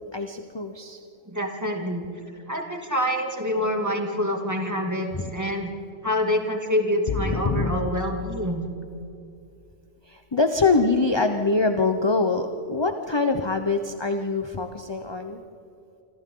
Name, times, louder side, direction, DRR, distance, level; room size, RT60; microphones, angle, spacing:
voice 1, 0.1-1.0 5.2-5.3 7.2-7.9 10.1-15.4, left 3 dB, 25° left, 6 dB, 0.8 m, -24 dB
voice 2, 1.3-2.1 2.5-5.7 6.0-8.8, equal, 15° right, 1 dB, 2.5 m, -26 dB
sound 1, 7.1-9.2, left 6 dB, 45° left, 0.4 m, -32 dB
27.5 x 26.0 x 3.9 m, 2.7 s
omnidirectional pair, 1.4 m